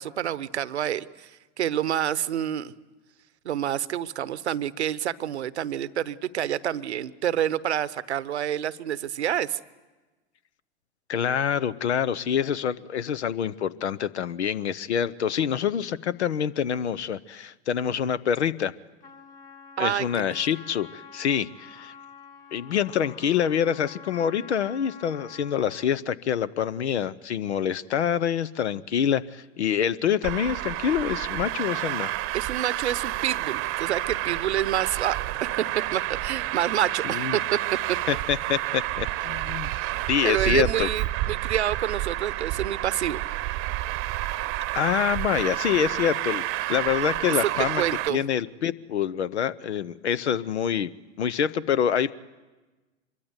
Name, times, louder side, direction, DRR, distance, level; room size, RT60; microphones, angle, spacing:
voice 1, 0.0-2.7 3.4-9.6 19.8-20.1 32.3-35.2 35.4-35.6 35.9-37.6 40.2-43.2 47.4-47.5 47.7-48.2, right 11 dB, 75° right, 17 dB, 0.9 m, -28 dB
voice 2, 11.1-18.7 19.8-21.9 22.5-32.1 37.0-37.4 38.1-39.7 40.1-40.9 44.7-47.8 48.1-50.9 51.2-52.2, left 8 dB, 80° left, 19 dB, 0.9 m, -26 dB
Trumpet, 19.0-25.9, left 5 dB, 25° left, 2.9 m, -47 dB
Traffic noise roadway noise, 30.2-48.1, right 17 dB, 40° right, 0.9 m, -30 dB
25.0 x 22.5 x 8.1 m, 1.2 s
hypercardioid pair, 95°, 33 cm